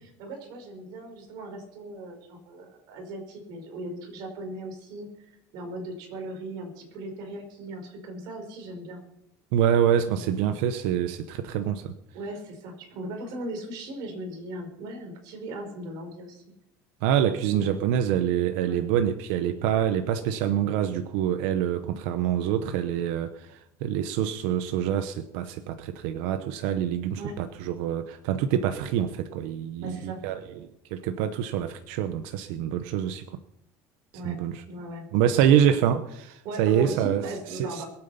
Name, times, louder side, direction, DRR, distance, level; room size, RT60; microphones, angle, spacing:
voice 1, 0.0-9.0 10.1-10.4 12.1-16.4 17.2-17.8 18.6-18.8 27.2-27.3 29.8-30.2 34.1-34.4 34.7-35.1 35.4-35.6 36.4-37.9, right 1 dB, 65° right, 4 dB, 4.9 m, -38 dB
voice 2, 9.5-12.0 17.0-30.4 30.9-33.4 34.2-34.6 35.1-37.2 37.5-37.8, right 9 dB, 80° right, 9 dB, 0.9 m, -26 dB
21.5 x 8.9 x 5.7 m, 0.80 s
cardioid pair, 135°, 7 cm